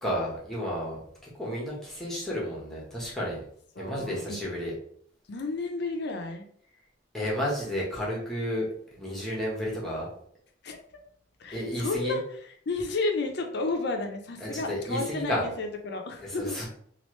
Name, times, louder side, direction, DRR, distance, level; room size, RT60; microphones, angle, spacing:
voice 1, 0.0-1.0 1.4-3.4 3.8-4.7 7.1-8.7 8.9-10.1 11.5-12.2 14.4-15.4 16.2-16.7, left 1 dB, ahead, -5 dB, 1.1 m, -31 dB
voice 2, 3.7-4.4 5.3-6.5 10.6-10.8 11.4-16.6, left 3 dB, 60° left, 4 dB, 0.6 m, -32 dB
3.1 x 2.5 x 3.1 m, 0.62 s
head